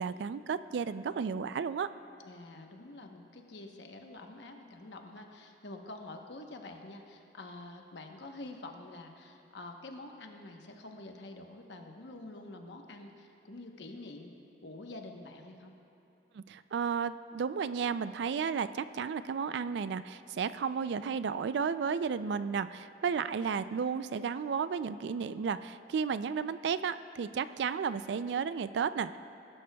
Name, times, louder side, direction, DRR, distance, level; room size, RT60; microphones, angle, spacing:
voice 1, 0.0-1.9 16.3-29.2, right 6 dB, 70° right, 14 dB, 0.3 m, -33 dB
voice 2, 2.2-14.3 14.6-15.7, left 2 dB, 75° left, 3 dB, 1.0 m, -47 dB
19.0 x 12.0 x 2.3 m, 2.8 s
head